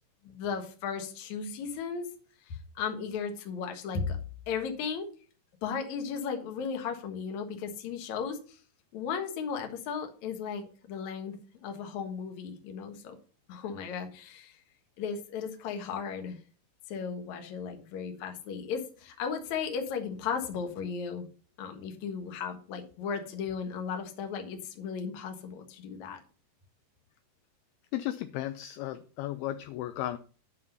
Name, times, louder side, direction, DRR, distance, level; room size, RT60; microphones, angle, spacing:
voice 1, 0.2-2.1 2.5-4.2 4.5-5.1 5.6-8.6 8.9-13.2 13.5-14.6 15.0-16.4 16.9-21.3 21.6-26.2, left 6 dB, 60° left, 4 dB, 2.0 m, -35 dB
voice 2, 27.9-30.2, left 14 dB, 85° left, 10 dB, 2.2 m, -35 dB
9.7 x 5.3 x 5.4 m, 0.39 s
omnidirectional pair, 5.0 m